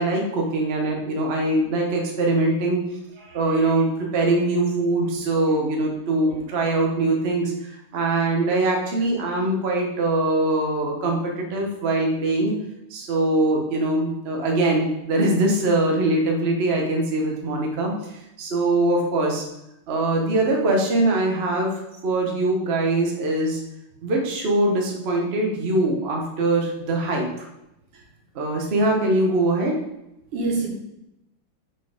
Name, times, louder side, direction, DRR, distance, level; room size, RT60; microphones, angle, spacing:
voice 1, 0.0-2.8 3.3-7.5 7.9-12.5 12.9-17.9 18.4-19.4 19.9-23.6 24.0-27.3 28.3-29.7, right 2 dB, 35° right, 0 dB, 1.2 m, -22 dB
voice 2, 30.3-30.7, right 3 dB, 90° right, -1 dB, 2.5 m, -27 dB
5.8 x 4.7 x 5.1 m, 0.87 s
omnidirectional pair, 2.4 m